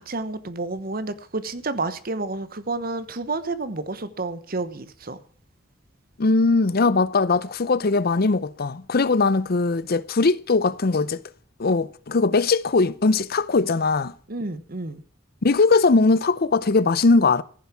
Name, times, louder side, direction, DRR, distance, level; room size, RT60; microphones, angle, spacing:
voice 1, 0.0-5.2 14.3-15.0, right 3 dB, 50° right, 1.1 m, -30 dB
voice 2, 6.2-11.2 11.6-14.1 15.4-17.4, left 3 dB, 50° left, 0.6 m, -20 dB
15.0 x 7.3 x 7.3 m
head